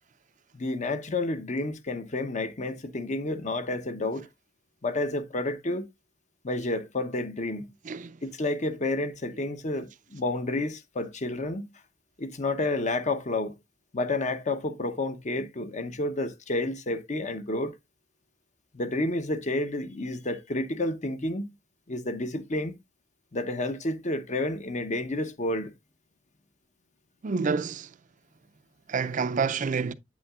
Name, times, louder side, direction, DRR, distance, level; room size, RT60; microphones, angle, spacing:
voice 1, 0.5-4.3 4.8-5.9 6.4-7.7 8.2-11.6 12.2-13.5 13.9-17.7 18.7-21.4 21.9-22.7 23.3-25.7, left 2 dB, 40° left, 0.8 m, -30 dB
voice 2, 7.9-8.2 27.2-27.9 28.9-29.9, right 5 dB, 45° right, 0.4 m, -28 dB
8.4 x 8.2 x 2.4 m
head